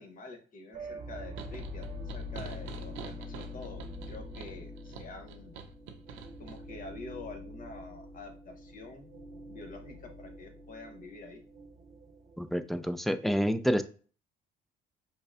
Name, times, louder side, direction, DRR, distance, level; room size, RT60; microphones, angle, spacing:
voice 1, 0.0-5.6 6.4-9.1 9.5-11.4, left 3 dB, 45° left, 4 dB, 1.0 m, -47 dB
sound 1, 0.7-12.6, left 1 dB, 45° right, 0.8 m, -44 dB
sound 2, 1.4-6.6, right 7 dB, 85° right, 0.5 m, -46 dB
voice 2, 12.4-13.8, equal, ahead, 11 dB, 0.3 m, -28 dB
5.2 x 2.1 x 2.4 m, 0.40 s
cardioid pair, 90°, 19 cm